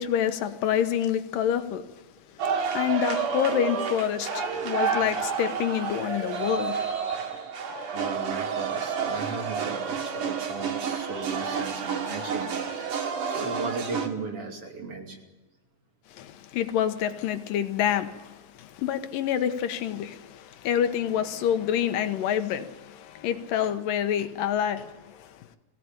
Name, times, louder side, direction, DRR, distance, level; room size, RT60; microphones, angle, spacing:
voice 1, 0.0-1.9 2.3-2.5 2.7-7.4 16.1-25.4, left 9 dB, 85° left, 2.7 m, -28 dB
sound 1, 2.4-14.1, right 6 dB, 70° right, 3.6 m, -30 dB
voice 2, 7.9-12.5 13.2-15.2, right 3 dB, 45° right, 3.4 m, -36 dB
22.5 x 16.0 x 8.9 m
omnidirectional pair, 3.8 m